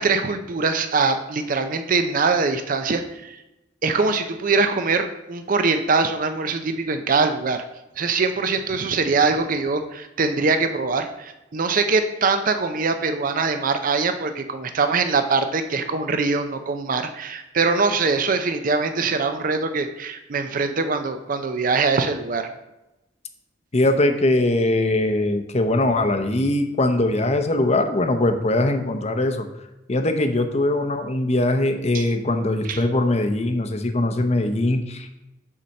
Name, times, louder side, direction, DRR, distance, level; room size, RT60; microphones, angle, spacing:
voice 1, 0.0-3.4 3.8-7.6 8.0-22.5 31.9-32.1 32.6-32.8, right 4 dB, 50° right, 8 dB, 0.5 m, -23 dB
voice 2, 23.7-29.5 29.9-35.2, left 2 dB, 35° left, 7 dB, 0.8 m, -21 dB
7.2 x 4.2 x 6.4 m, 0.95 s
head